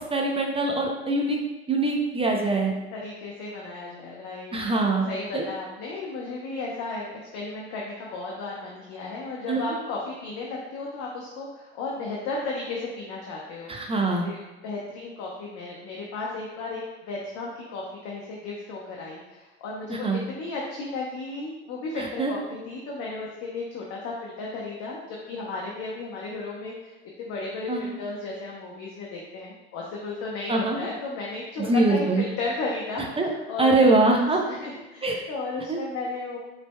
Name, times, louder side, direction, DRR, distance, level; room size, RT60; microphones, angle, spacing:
voice 1, 0.1-1.4 1.7-2.7 4.5-5.1 5.3-5.4 9.5-9.6 13.7-14.3 19.9-20.2 22.0-22.3 27.7-27.8 30.5-30.9 31.6-32.2 33.2-33.3 33.6-34.4 35.0-35.2 35.7-35.8, right 2 dB, 20° right, 0 dB, 0.6 m, -23 dB
voice 2, 2.9-4.6 4.8-14.0 14.2-14.4 14.6-26.9 27.2-34.2 34.5-36.4, left 3 dB, 50° left, -3 dB, 0.8 m, -34 dB
5.0 x 3.3 x 2.2 m, 1.0 s
hypercardioid pair, 70°, 32 cm